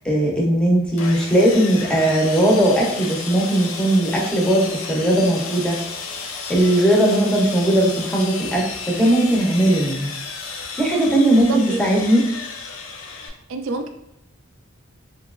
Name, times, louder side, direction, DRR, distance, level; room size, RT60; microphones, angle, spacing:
voice 1, 0.0-5.8 6.5-10.1 10.8-12.2, right 1 dB, 5° left, -2 dB, 0.6 m, -18 dB
Sawing, 1.0-13.3, left 4 dB, 65° left, 0.4 m, -33 dB
voice 2, 11.4-11.8 13.2-13.9, right 3 dB, 65° right, 5 dB, 0.3 m, -29 dB
3.0 x 2.8 x 2.4 m, 0.83 s
head